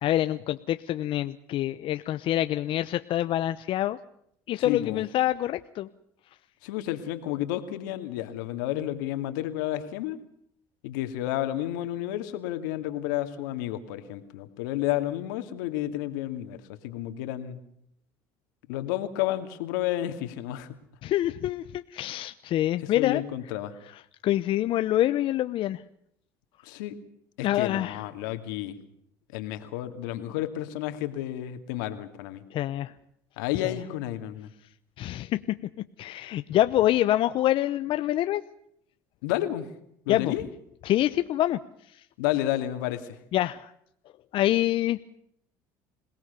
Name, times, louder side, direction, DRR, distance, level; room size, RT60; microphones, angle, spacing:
voice 1, 0.0-4.0 4.5-5.9 21.0-23.2 24.2-25.8 27.4-28.0 32.5-32.9 33.6-33.7 35.0-38.4 40.1-40.3 40.8-41.6 43.3-43.7 44.3-45.0, left 13 dB, 60° left, 11 dB, 0.9 m, -26 dB
voice 2, 4.6-5.0 6.6-10.2 10.8-17.6 18.7-20.7 22.8-23.8 26.6-27.0 27.4-28.8 29.3-32.4 33.4-34.5 39.2-39.7 40.1-40.4 42.2-43.2, left 13 dB, 85° left, 9 dB, 2.5 m, -31 dB
27.0 x 18.5 x 6.9 m, 0.72 s
supercardioid pair, 80°, 10 cm